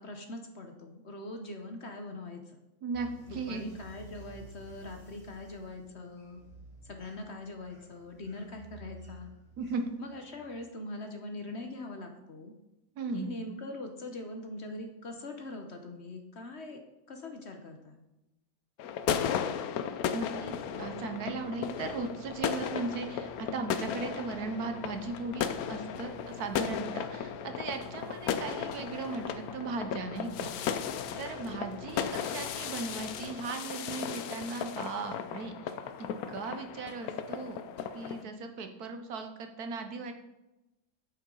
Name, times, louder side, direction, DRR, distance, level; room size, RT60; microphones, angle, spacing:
voice 1, 0.0-2.6 3.3-6.4 6.8-9.3 10.0-12.5 13.1-16.8 17.1-18.0, left 2 dB, 50° left, 4 dB, 1.1 m, -42 dB
voice 2, 2.8-3.6 9.6-9.9 12.9-13.3 20.1-30.9 31.2-37.6 37.9-40.1, right 4 dB, 70° right, 6 dB, 1.4 m, -37 dB
sound 1, 2.9-10.6, right 1 dB, 25° right, 4.0 m, -53 dB
sound 2, 18.8-38.2, left 8 dB, 70° left, 1.1 m, -36 dB
sound 3, 20.4-33.3, equal, 50° right, 3.7 m, -51 dB
9.1 x 8.1 x 3.9 m, 0.97 s
omnidirectional pair, 1.7 m